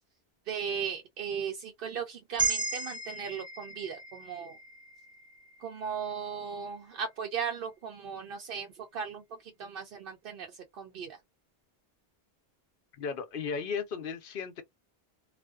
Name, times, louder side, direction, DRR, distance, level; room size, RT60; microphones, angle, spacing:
voice 1, 0.5-4.6 5.6-9.2 9.6-10.5 10.7-11.2, right 7 dB, 65° right, 0.7 m, -37 dB
sound 1, 2.4-6.6, right 4 dB, 5° right, 0.6 m, -36 dB
voice 2, 13.0-14.6, left 6 dB, 60° left, 0.7 m, -35 dB
2.4 x 2.2 x 2.3 m
omnidirectional pair, 1.1 m